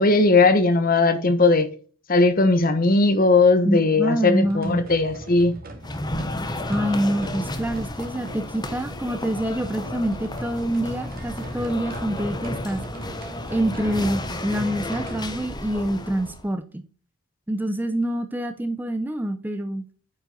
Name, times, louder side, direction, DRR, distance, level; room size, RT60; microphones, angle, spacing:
voice 1, 0.0-1.7 2.1-5.6, left 3 dB, 40° left, 1.0 m, -18 dB
voice 2, 3.6-4.8 6.7-12.8 13.5-16.8 17.5-19.8, right 1 dB, 10° right, 0.5 m, -26 dB
sound 1, 4.4-15.3, right 1 dB, 45° right, 1.9 m, -39 dB
sound 2, 5.8-16.5, left 1 dB, 20° left, 0.9 m, -33 dB
8.8 x 5.5 x 3.9 m
head